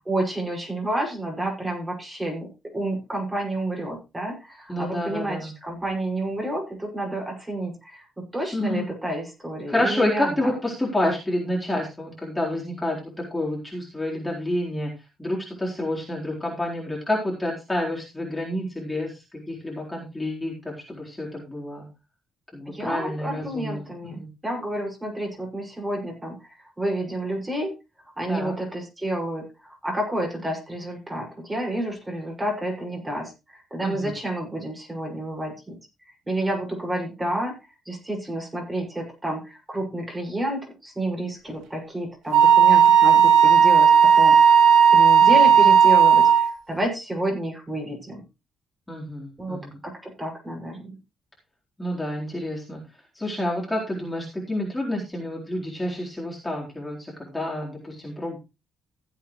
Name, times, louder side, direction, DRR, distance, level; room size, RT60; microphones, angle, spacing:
voice 1, 0.1-10.5 22.7-26.5 26.8-27.7 28.2-35.7 36.1-37.6 37.8-48.2 49.4-51.0, right 1 dB, 15° right, 0 dB, 6.0 m, -30 dB
voice 2, 4.7-5.5 8.4-8.9 9.7-14.9 15.2-21.9 22.5-24.3 28.3-28.5 33.8-34.1 45.2-45.3 48.9-49.7 51.8-52.8 53.1-58.4, left 1 dB, 15° left, -4 dB, 4.1 m, -29 dB
Wind instrument woodwind instrument, 42.3-46.5, right 7 dB, 85° right, 2.5 m, -14 dB
16.0 x 8.4 x 3.2 m, 0.27 s
cardioid pair, 90°, 0 cm